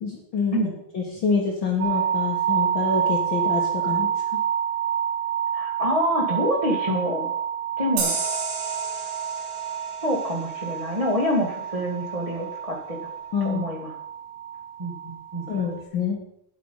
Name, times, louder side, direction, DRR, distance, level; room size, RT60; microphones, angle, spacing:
voice 1, 0.0-0.7 0.9-4.1 13.3-13.6 15.5-16.2, left 5 dB, 60° left, 0 dB, 1.3 m, -26 dB
sound 1, 1.8-15.8, right 9 dB, 65° right, 1.8 m, -28 dB
voice 2, 5.5-7.3 7.8-8.2 10.0-13.0 13.4-13.9 14.8-15.5, equal, 35° right, -2 dB, 0.5 m, -26 dB
sound 2, 8.0-11.3, right 4 dB, 85° right, 3.4 m, -32 dB
9.3 x 8.0 x 5.4 m, 0.74 s
omnidirectional pair, 3.7 m